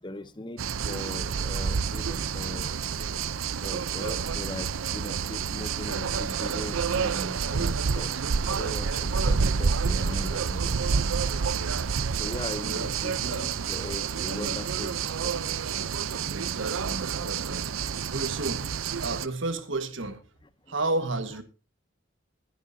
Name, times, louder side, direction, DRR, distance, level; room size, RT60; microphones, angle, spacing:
voice 1, 0.0-0.6 0.9-2.7 3.6-11.0 12.2-15.6, left 1 dB, 20° left, 0.8 m, -39 dB
sound 1, 0.6-19.3, right 6 dB, 80° right, 0.6 m, -29 dB
voice 2, 16.2-18.7 19.0-20.2 20.7-21.4, right 2 dB, 65° right, 1.6 m, -32 dB
22.0 x 11.0 x 2.7 m
head